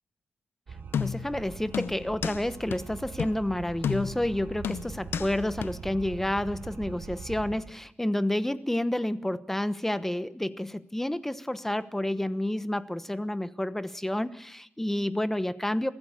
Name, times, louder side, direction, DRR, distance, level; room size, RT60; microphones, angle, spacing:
sound 1, 0.7-7.6, right 5 dB, 60° right, 3.7 m, -42 dB
sound 2, 0.9-1.4 1.7-2.4 2.7-2.8 3.2-3.4 3.8-4.3 4.6-5.3 5.6-5.7, left 7 dB, 80° left, 0.7 m, -31 dB
voice 1, 1.0-15.9, left 1 dB, 10° left, 13 dB, 1.1 m, -30 dB
23.5 x 15.0 x 7.2 m, 0.70 s
cardioid pair, 95°, 4 cm